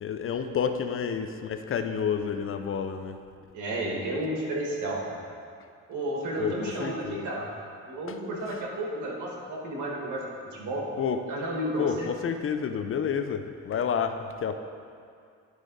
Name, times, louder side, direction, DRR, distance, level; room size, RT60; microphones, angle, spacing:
voice 1, 0.0-3.2 6.4-7.3 8.1-8.2 11.0-11.2 11.8-14.6, left 7 dB, 45° left, 8 dB, 0.5 m, -30 dB
voice 2, 3.5-5.0 5.9-7.5 7.9-10.2 10.5-10.9 11.3-12.1, right 1 dB, 75° right, -2 dB, 1.7 m, -32 dB
11.0 x 4.8 x 3.9 m, 2.3 s
cardioid pair, 90°, 30 cm